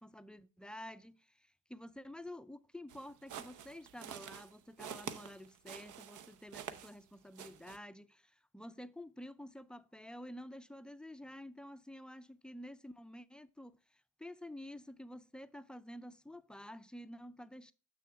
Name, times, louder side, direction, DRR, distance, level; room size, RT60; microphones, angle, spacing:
voice 1, 0.0-17.7, left 1 dB, 5° left, 0.3 m, -50 dB
sound 1, 2.9-7.1 7.3-7.8, right 9 dB, 80° right, 0.7 m, -48 dB
6.9 x 6.4 x 3.4 m
cardioid pair, 90°, 30 cm